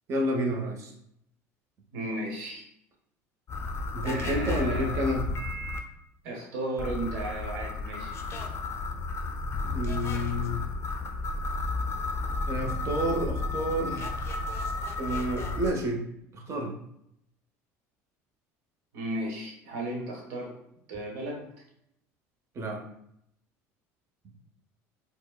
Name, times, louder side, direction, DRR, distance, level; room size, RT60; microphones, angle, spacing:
voice 1, 0.1-0.9 3.9-5.3 9.7-10.6 12.5-14.1 15.0-16.0 16.3-16.7 22.6-22.8, right 1 dB, 40° right, 1 dB, 0.7 m, -30 dB
voice 2, 1.9-2.6 4.0-5.1 6.2-8.1 18.9-20.5 20.9-21.4, right 1 dB, 80° right, -1 dB, 0.9 m, -35 dB
sound 1, 3.5-5.8 6.8-15.7, left 3 dB, 35° left, 0.4 m, -32 dB
4.4 x 2.0 x 2.3 m, 0.75 s
supercardioid pair, 100°, 7 cm